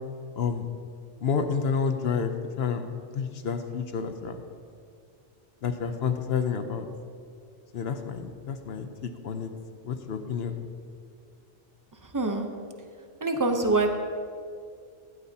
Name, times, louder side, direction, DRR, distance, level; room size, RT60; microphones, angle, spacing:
voice 1, 0.4-0.7 1.2-4.4 5.6-6.9 7.7-9.5 9.8-10.6, left 6 dB, 60° left, 7 dB, 0.9 m, -29 dB
voice 2, 12.1-12.5 13.2-13.9, right 2 dB, 20° right, 5 dB, 0.7 m, -24 dB
15.0 x 12.0 x 2.8 m, 2.3 s
omnidirectional pair, 1.2 m